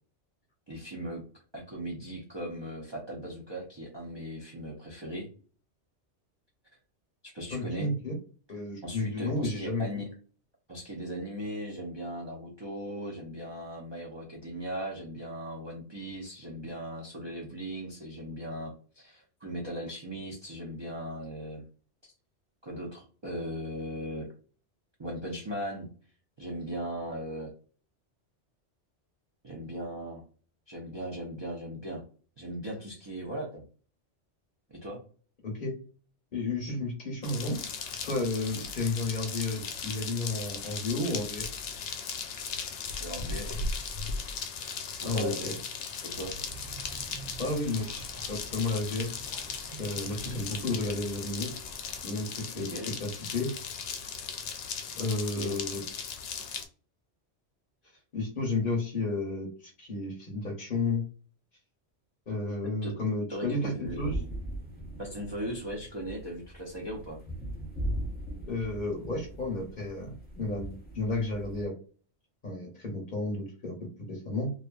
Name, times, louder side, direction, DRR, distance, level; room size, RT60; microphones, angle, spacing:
voice 1, 0.7-1.2 1.5-5.3 7.3-7.9 8.8-10.1 10.7-21.6 22.6-24.3 25.0-25.9 26.4-27.5 29.4-30.2 30.7-32.0 32.4-33.6 34.7-35.0 43.0-43.6 45.0-45.7 46.0-46.4 52.5-52.9 55.3-55.6 62.8-62.9 63.3-64.0 65.0-67.2, equal, 35° right, -3 dB, 0.5 m, -38 dB
voice 2, 7.5-8.2 8.5-9.9 35.4-35.7 36.3-37.6 38.0-41.5 45.0-45.5 47.4-49.1 49.8-51.5 52.0-52.7 53.0-53.5 54.9-55.8 58.1-61.0 62.3-64.2 68.5-71.7 72.4-74.5, left 2 dB, 45° left, 0 dB, 0.8 m, -32 dB
sound 1, 37.2-56.7, left 5 dB, 80° left, 0.9 m, -37 dB
Rupit silent village birds bugs air plain bypass, 46.1-52.0, right 3 dB, 75° right, 0.9 m, -48 dB
sound 2, 63.8-71.6, right 1 dB, 10° left, 0.6 m, -39 dB
2.6 x 2.3 x 2.2 m, 0.40 s
omnidirectional pair, 1.2 m